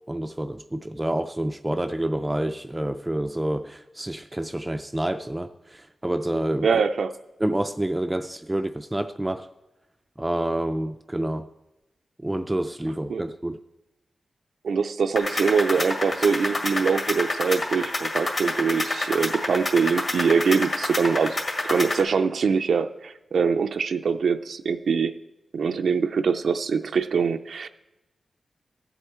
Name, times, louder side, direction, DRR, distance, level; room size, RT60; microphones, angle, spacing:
voice 1, 0.1-6.7 7.4-9.5 10.2-11.5 12.2-13.6, right 1 dB, 15° right, 0.4 m, -28 dB
voice 2, 6.6-7.1 13.1-13.2 14.6-21.4 21.6-25.1 25.5-27.7, right 5 dB, 80° right, 0.4 m, -23 dB
sound 1, 15.2-22.0, left 2 dB, 45° left, 1.8 m, -28 dB
14.5 x 8.0 x 4.4 m
wide cardioid pair, 100°, 0 cm